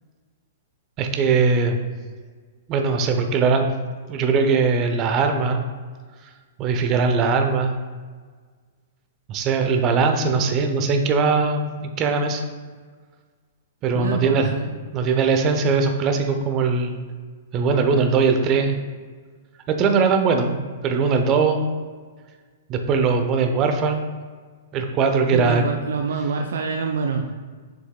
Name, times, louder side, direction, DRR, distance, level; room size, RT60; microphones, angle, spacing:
voice 1, 1.0-1.8 2.7-3.7 4.1-5.6 6.6-7.8 9.3-12.4 13.8-14.5 14.9-17.0 17.5-18.8 19.7-20.6 20.8-21.6 22.7-24.0 24.7-25.6, right 4 dB, 30° right, 5 dB, 0.9 m, -20 dB
voice 2, 13.9-14.7 25.3-27.3, right 5 dB, 65° right, 4 dB, 0.5 m, -26 dB
7.8 x 6.4 x 2.4 m, 1.5 s
figure-of-eight pair, 110°, 0 cm